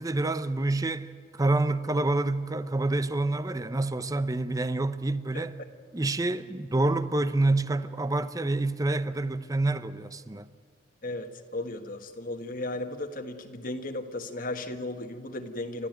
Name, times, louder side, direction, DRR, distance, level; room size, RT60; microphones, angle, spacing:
voice 1, 0.0-5.6 5.9-10.5, right 2 dB, 20° right, 0.7 m, -27 dB
voice 2, 11.0-15.9, left 2 dB, 50° left, 1.5 m, -35 dB
30.0 x 13.5 x 9.3 m
head